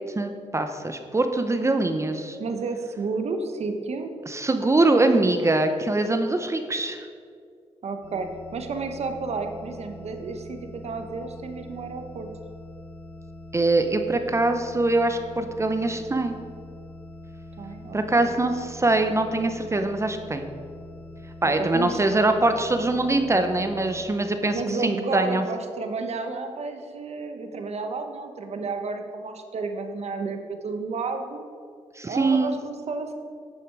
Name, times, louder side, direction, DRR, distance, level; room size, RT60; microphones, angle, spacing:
voice 1, 0.2-2.4 4.3-7.1 13.5-16.4 17.9-20.5 21.4-25.4 32.0-32.6, right 2 dB, 25° right, 7 dB, 0.7 m, -23 dB
voice 2, 2.4-4.1 7.8-12.3 17.6-18.2 21.4-22.1 24.5-31.4 32.0-33.1, right 4 dB, 65° right, 6 dB, 1.1 m, -31 dB
sound 1, 8.0-24.1, left 1 dB, 85° left, 2.3 m, -43 dB
11.0 x 7.0 x 4.7 m, 2.2 s
cardioid pair, 85°, 12 cm